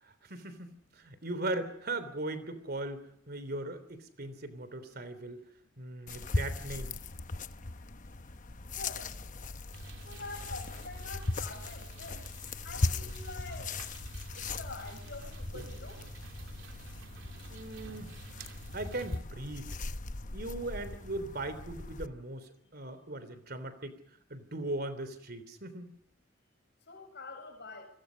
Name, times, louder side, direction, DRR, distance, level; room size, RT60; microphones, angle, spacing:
voice 1, 0.0-5.4 5.8-6.9 17.5-18.1 18.7-19.8 20.3-24.0 24.3-25.9, right 2 dB, 55° right, 13 dB, 3.3 m, -39 dB
sound 1, 6.1-22.1, left 2 dB, 40° left, 0.9 m, -39 dB
voice 2, 8.7-9.1 10.0-12.3 12.6-13.7 14.3-16.0 26.9-27.9, left 3 dB, 60° left, 4 dB, 7.8 m, -45 dB
sound 2, 9.7-19.2, right 1 dB, 85° right, 3.1 m, -48 dB
29.0 x 21.5 x 5.2 m, 0.74 s
head